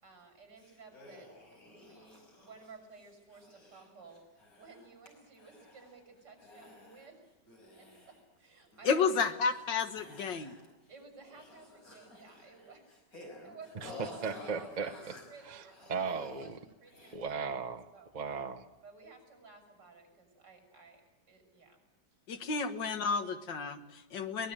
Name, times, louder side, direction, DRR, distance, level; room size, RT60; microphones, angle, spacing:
voice 1, 0.0-1.3 1.7-4.2 4.6-7.2 7.8-9.3 10.9-12.8 13.4-14.0 14.6-16.5 16.8-17.6 17.9-18.1 18.8-21.0 21.3-21.8 22.6-22.7, right 4 dB, 70° right, 5 dB, 7.2 m, -55 dB
sound 1, 0.6-5.1 5.4-6.0 6.4-7.1 7.5-8.4 8.7-9.7 9.9-10.9 11.2-16.5 16.9-17.2, left 2 dB, 50° left, 6.2 m, -52 dB
voice 2, 8.8-10.5 22.3-24.5, left 5 dB, 85° left, 9 dB, 2.1 m, -31 dB
voice 3, 13.8-14.9 15.4-16.6 17.1-17.9 18.1-18.6, right 5 dB, 30° right, 8 dB, 0.9 m, -37 dB
23.0 x 20.0 x 8.9 m, 0.95 s
omnidirectional pair, 1.9 m